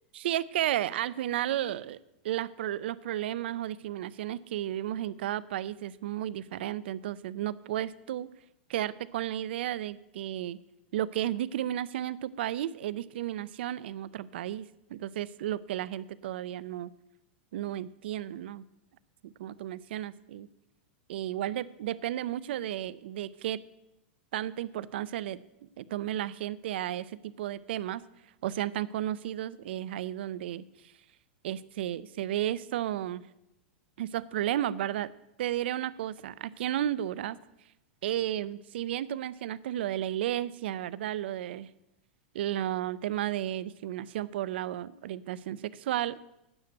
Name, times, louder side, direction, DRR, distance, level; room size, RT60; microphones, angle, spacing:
voice 1, 0.1-2.0 2.2-8.3 8.7-10.6 10.9-14.6 14.9-16.9 17.5-18.6 19.2-20.5 21.1-23.6 24.3-28.0 28.4-30.6 31.4-33.2 34.0-35.1 35.4-37.4 38.0-41.7 42.3-46.2, right 12 dB, 70° right, 19 dB, 0.5 m, -33 dB
9.6 x 6.8 x 8.0 m, 0.88 s
hypercardioid pair, 115°, 6 cm